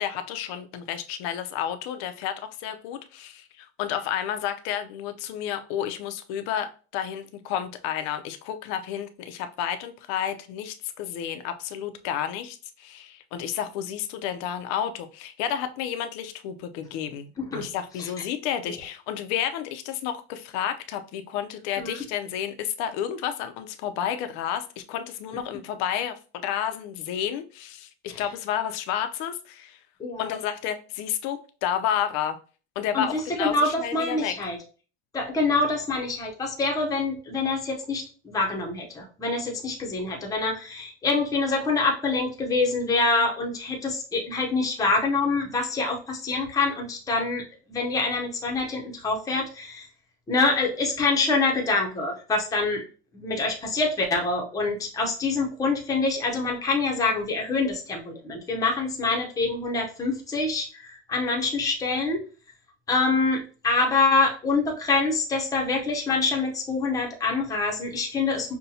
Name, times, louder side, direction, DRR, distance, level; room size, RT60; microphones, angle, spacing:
voice 1, 0.0-26.1 26.4-29.8 30.2-32.4 32.8-34.3, left 9 dB, 60° left, 0.5 m, -31 dB
voice 2, 17.4-17.7 18.0-18.1 21.8-22.0 28.1-28.2 30.0-30.3 32.9-34.6 35.1-47.4 47.7-49.9 50.3-52.8 53.1-62.2 62.9-68.6, left 3 dB, 10° left, 0.6 m, -25 dB
5.5 x 2.2 x 2.7 m
cardioid pair, 145°, 31 cm